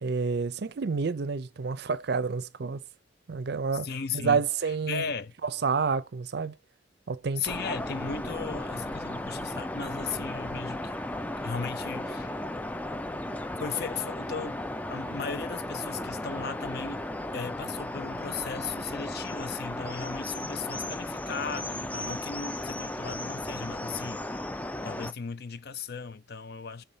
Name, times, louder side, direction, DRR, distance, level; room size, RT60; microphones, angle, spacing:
voice 1, 0.0-2.8 3.3-3.9 4.1-5.1 5.4-6.5 7.1-7.5, right 5 dB, 60° right, 0.5 m, -29 dB
voice 2, 3.7-5.3 7.4-10.9 11.4-12.4 13.6-14.6 14.9-17.1 17.3-24.3 24.8-26.8, left 5 dB, 60° left, 0.5 m, -36 dB
sound 1, 7.5-25.1, left 1 dB, 10° left, 0.3 m, -35 dB
7.2 x 3.7 x 3.9 m
head